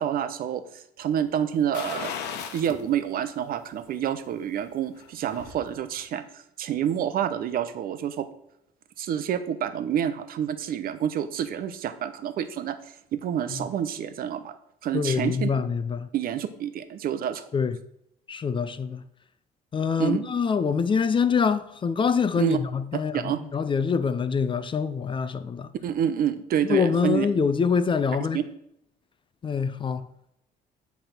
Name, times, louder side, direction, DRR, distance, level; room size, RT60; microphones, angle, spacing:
voice 1, 0.0-2.1 2.5-8.3 9.0-12.8 13.1-14.5 14.8-15.5 16.1-17.5 20.0-20.3 22.4-22.6 23.1-23.4 25.8-27.3 28.3-28.4, right 9 dB, 60° right, 0.8 m, -28 dB
sound 1, 1.7-2.8 3.2-3.3 4.8-5.6 6.0-6.1, left 7 dB, 85° left, 1.0 m, -35 dB
voice 2, 14.9-16.1 17.5-17.8 18.3-19.0 19.7-25.7 26.6-28.4 29.4-30.0, left 6 dB, 30° left, 0.5 m, -25 dB
10.0 x 3.5 x 5.9 m
cardioid pair, 110°, 17 cm